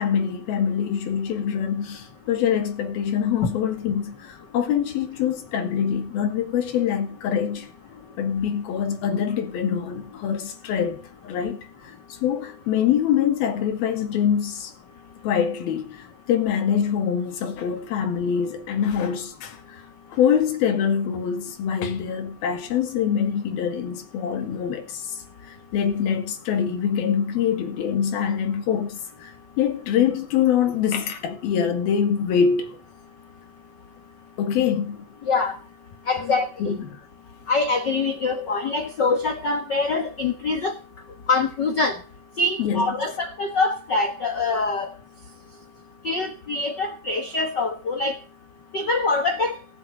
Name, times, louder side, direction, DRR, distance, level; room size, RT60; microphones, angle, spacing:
voice 1, 0.0-7.7 8.2-11.6 12.2-14.7 15.2-19.8 20.1-25.2 25.7-32.7 34.4-35.0 36.6-37.0 42.6-42.9, left 8 dB, 85° left, 3.9 m, -24 dB
voice 2, 36.1-36.8 37.5-40.7 41.3-42.0 42.4-44.9 46.0-48.1 48.7-49.6, left 3 dB, 60° left, 1.1 m, -24 dB
18.0 x 7.8 x 6.4 m
omnidirectional pair, 4.2 m